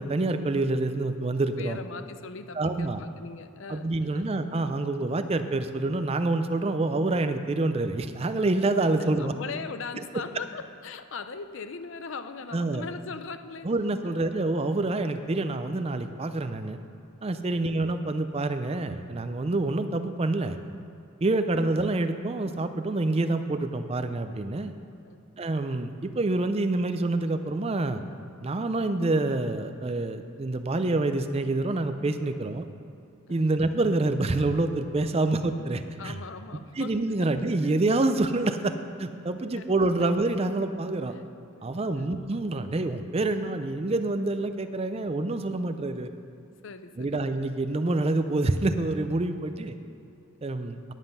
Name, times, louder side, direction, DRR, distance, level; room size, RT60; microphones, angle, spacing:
voice 1, 0.0-1.8 2.6-3.0 3.7-9.3 12.5-12.9 13.6-16.8 17.2-20.6 21.2-24.7 25.4-28.0 28.4-32.6 33.3-36.2 36.8-41.1 41.6-46.1 47.0-49.8 50.4-50.8, right 2 dB, 30° right, 9 dB, 0.4 m, -27 dB
voice 2, 1.6-3.9 4.1-4.4 9.0-13.7 14.0-14.3 17.5-17.7 21.4-21.6 25.1-25.2 32.4-32.5 33.3-33.5 35.3-35.5 36.0-36.9 37.2-37.3 39.6-39.7 41.1-41.2 41.5-41.7 41.9-42.2 46.6-47.2, left 4 dB, 60° left, 10 dB, 0.5 m, -40 dB
9.6 x 9.1 x 5.4 m, 2.6 s
head